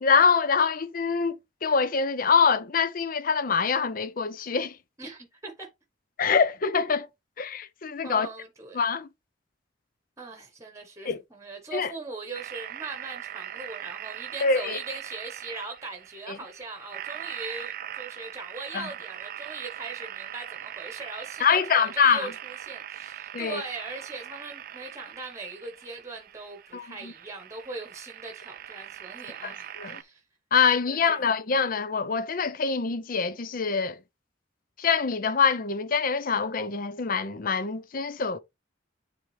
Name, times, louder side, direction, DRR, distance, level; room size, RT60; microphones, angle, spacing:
voice 1, 0.0-4.8 6.2-7.1 7.4-8.3 8.7-9.1 11.1-11.2 11.7-11.9 14.4-14.8 16.3-16.4 18.7-18.9 21.4-22.3 23.3-23.6 26.7-27.1 29.4-29.5 29.8-30.0 30.5-34.0 34.8-38.4, left 5 dB, 50° left, 0.6 m, -25 dB
voice 2, 5.0-5.7 8.0-8.8 10.2-30.2 30.9-31.2, right 3 dB, 15° right, 1.1 m, -40 dB
sound 1, 12.3-30.0, right 10 dB, 50° right, 0.4 m, -41 dB
8.8 x 3.6 x 3.2 m
head